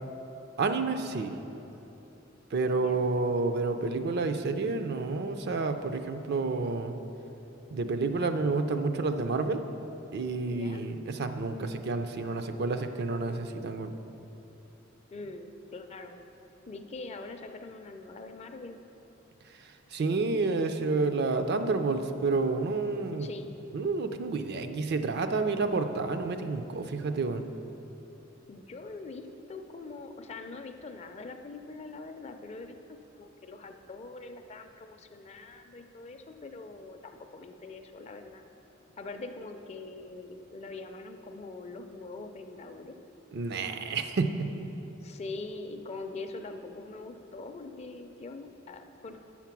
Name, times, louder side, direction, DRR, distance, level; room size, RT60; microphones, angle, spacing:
voice 1, 0.6-1.3 2.5-7.0 7.7-9.6 10.1-13.9 19.9-23.3 23.7-27.4 43.3-44.5, right 3 dB, 55° right, 8 dB, 0.4 m, -29 dB
voice 2, 2.6-3.1 10.5-10.8 15.1-16.2 16.7-18.8 23.2-23.5 28.5-32.7 33.1-38.4 39.0-42.9 45.0-49.2, left 3 dB, 35° left, 6 dB, 0.4 m, -43 dB
7.5 x 5.8 x 5.9 m, 3.0 s
head